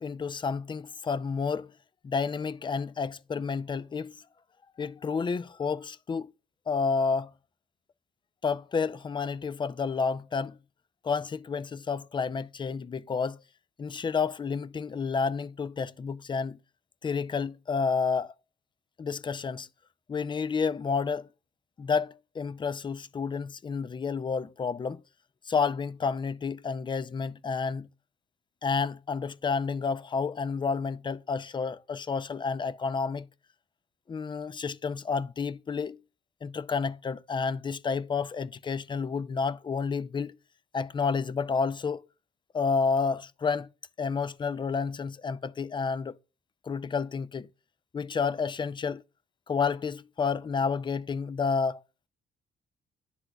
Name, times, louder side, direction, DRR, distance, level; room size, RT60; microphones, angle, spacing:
voice 1, 0.0-1.7 2.0-4.2 4.8-6.3 6.7-7.3 8.4-10.6 11.0-13.4 13.8-16.6 17.0-18.3 19.0-19.7 20.1-21.3 21.8-25.0 25.5-27.9 28.6-33.3 34.1-36.0 36.4-40.4 40.7-42.0 42.5-43.7 44.0-46.2 46.6-47.5 47.9-49.0 49.5-51.8, left 5 dB, 25° left, 0.4 m, -30 dB
11.0 x 3.8 x 2.2 m
cardioid pair, 90°, 20 cm